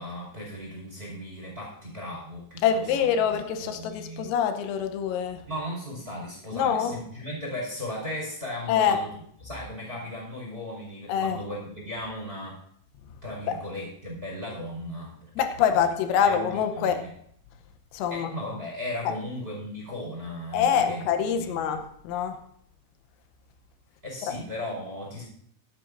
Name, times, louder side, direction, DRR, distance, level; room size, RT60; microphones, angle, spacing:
voice 1, 0.0-2.8 3.2-4.3 5.5-9.1 9.4-12.6 13.2-15.3 15.6-15.9 16.2-17.0 18.1-21.1 21.4-21.7 24.0-25.2, left 1 dB, 10° right, -3 dB, 4.2 m, -36 dB
voice 2, 2.6-5.4 6.5-7.0 8.7-9.0 11.1-11.4 13.5-13.6 15.4-17.0 17.9-18.3 20.5-22.4, left 8 dB, 85° left, 7 dB, 3.6 m, -25 dB
23.0 x 8.7 x 2.6 m, 0.66 s
omnidirectional pair, 6.0 m